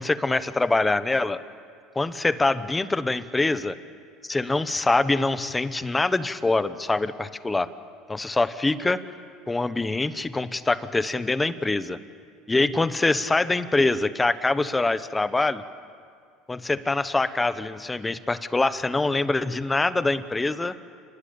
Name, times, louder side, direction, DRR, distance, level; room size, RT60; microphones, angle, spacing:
voice 1, 0.0-1.4 1.9-3.7 4.3-7.7 8.1-9.0 9.5-12.0 12.5-15.6 16.5-20.7, left 2 dB, 10° left, 13 dB, 1.0 m, -24 dB
29.0 x 20.0 x 8.7 m, 2.2 s
cardioid pair, 130°, 0 cm